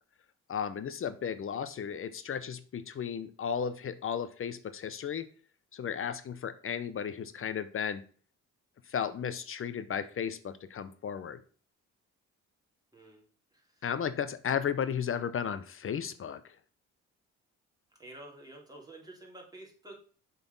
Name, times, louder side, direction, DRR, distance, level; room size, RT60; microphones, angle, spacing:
voice 1, 0.5-5.3 5.7-8.0 8.9-11.4 13.8-16.4, left 7 dB, 45° left, 13 dB, 0.7 m, -34 dB
voice 2, 12.9-13.2 18.0-20.0, right 1 dB, 15° right, -2 dB, 2.9 m, -49 dB
7.0 x 4.2 x 5.3 m, 0.42 s
cardioid pair, 90°, 30 cm